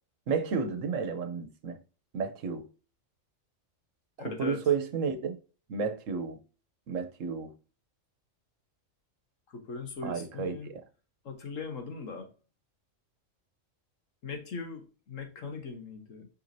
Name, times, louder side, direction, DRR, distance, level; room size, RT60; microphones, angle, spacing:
voice 1, 0.3-1.8 2.1-2.7 4.2-5.4 5.7-6.4 6.9-7.5 10.0-10.6, right 5 dB, 75° right, 1.3 m, -31 dB
voice 2, 4.2-4.6 9.5-10.7 11.2-12.3 14.2-16.3, left 4 dB, 75° left, 1.7 m, -40 dB
6.3 x 5.6 x 2.7 m
omnidirectional pair, 1.3 m